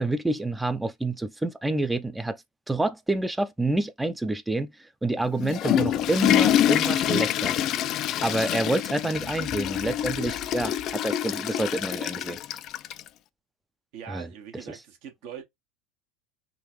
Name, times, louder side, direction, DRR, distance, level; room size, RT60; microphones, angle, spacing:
voice 1, 0.0-2.4 2.7-7.6 8.2-12.4 14.1-14.3, right 2 dB, 10° right, 0.5 m, -28 dB
Water / Toilet flush, 5.2-13.1, left 11 dB, 50° left, 0.3 m, -26 dB
voice 2, 13.9-15.4, right 8 dB, 60° right, 1.3 m, -42 dB
3.8 x 2.5 x 3.0 m
hypercardioid pair, 80°, 0 cm